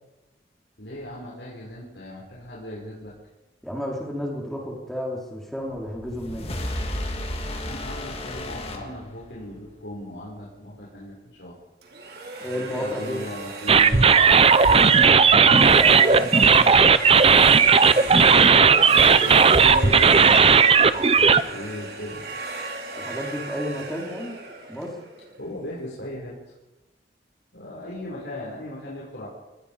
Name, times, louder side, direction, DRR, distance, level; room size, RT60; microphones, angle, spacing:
voice 1, 0.8-3.1 7.5-11.6 12.5-15.3 17.9-22.2 25.4-26.3 27.5-29.3, left 1 dB, 90° left, -5 dB, 6.6 m, -36 dB
voice 2, 3.6-6.6 12.4-13.2 15.3-17.0 22.9-24.4 24.7-25.0, equal, ahead, -1 dB, 4.4 m, -32 dB
sound 1, 5.8-9.6, left 1 dB, 35° left, 3.0 m, -32 dB
sound 2, 11.8-25.7, right 2 dB, 60° right, 4.5 m, -35 dB
sound 3, 13.7-21.4, right 5 dB, 35° right, 0.7 m, -15 dB
28.0 x 20.0 x 5.4 m, 1.0 s
head